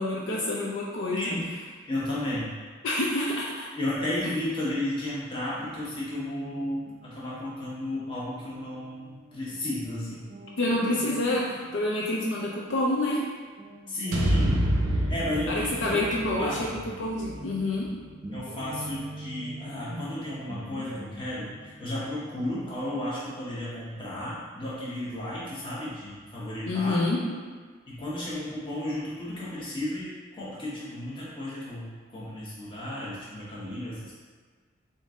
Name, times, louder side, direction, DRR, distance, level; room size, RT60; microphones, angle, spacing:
voice 1, 0.0-1.3 2.8-3.7 10.6-13.2 15.5-17.9 26.7-27.2, left 1 dB, 65° left, -3 dB, 0.5 m, -27 dB
voice 2, 1.1-1.5 1.9-2.5 3.8-10.3 13.9-16.8 18.3-27.0 27.9-34.2, left 1 dB, 25° left, -8 dB, 1.0 m, -33 dB
Guitar, 5.6-13.3 13.6-24.0, right 1 dB, 25° right, 0.3 m, -46 dB
sound 1, 14.1-18.3, right 1 dB, 75° right, 0.5 m, -28 dB
3.7 x 2.6 x 3.5 m, 1.5 s
head